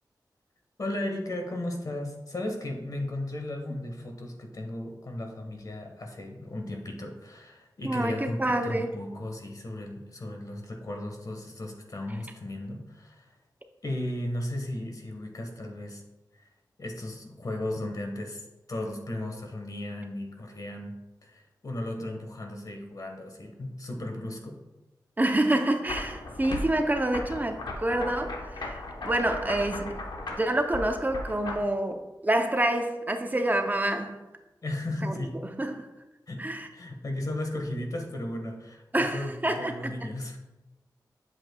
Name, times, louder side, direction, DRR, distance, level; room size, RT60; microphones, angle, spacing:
voice 1, 0.8-13.3 13.8-16.0 16.4-16.5 16.8-21.0 21.2-24.6 34.6-35.4 36.3-40.4, left 1 dB, 55° left, 1.2 m, -35 dB
voice 2, 7.8-8.9 25.2-30.0 30.3-34.2 35.0-35.1 35.6-35.9 36.4-36.7 38.9-40.0, right 1 dB, 25° right, 0.5 m, -27 dB
sound 1, 25.8-31.5, left 2 dB, 75° left, 0.9 m, -37 dB
8.0 x 7.2 x 2.2 m
wide cardioid pair, 90°, 8 cm